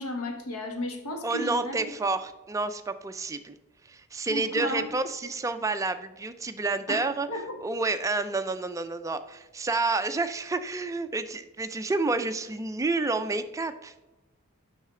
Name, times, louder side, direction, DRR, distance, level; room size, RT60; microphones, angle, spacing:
voice 1, 0.0-1.9 4.3-4.9 6.9-7.6, left 1 dB, 90° left, 3 dB, 1.3 m, -34 dB
voice 2, 1.2-3.6 3.9-7.3 7.6-13.9, right 3 dB, 15° right, 9 dB, 0.4 m, -29 dB
7.5 x 5.6 x 3.7 m, 1.1 s
head